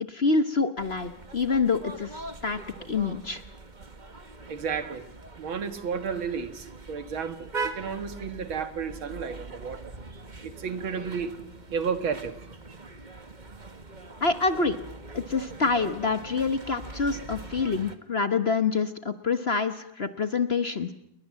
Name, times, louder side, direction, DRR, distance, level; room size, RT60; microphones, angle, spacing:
voice 1, 0.1-2.6 2.8-3.4 14.2-14.8 15.1-20.9, left 4 dB, 40° left, 1.1 m, -26 dB
sound 1, 0.8-18.0, right 3 dB, 25° right, 1.5 m, -42 dB
voice 2, 4.5-5.0 5.4-11.3 11.7-12.4, right 6 dB, 85° right, 2.6 m, -32 dB
29.5 x 22.0 x 7.6 m
omnidirectional pair, 2.2 m